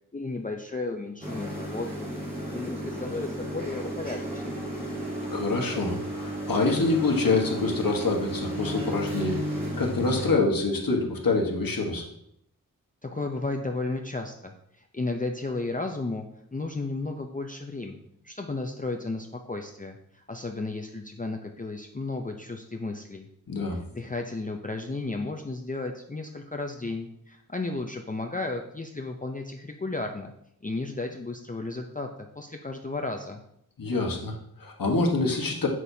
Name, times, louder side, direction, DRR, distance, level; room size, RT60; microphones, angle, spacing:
voice 1, 0.1-2.1 2.5-4.7 13.0-16.2 16.5-18.0 18.2-23.3 23.9-30.3 30.6-32.1 32.4-33.4, left 3 dB, 25° left, 3 dB, 0.5 m, -33 dB
sound 1, 1.2-10.3, right 1 dB, 25° right, 2.9 m, -33 dB
voice 2, 5.3-9.4 9.8-12.1 23.5-23.8 33.8-35.7, left 3 dB, 70° left, 1 dB, 1.3 m, -26 dB
7.4 x 6.4 x 2.7 m, 0.75 s
wide cardioid pair, 60°, 36 cm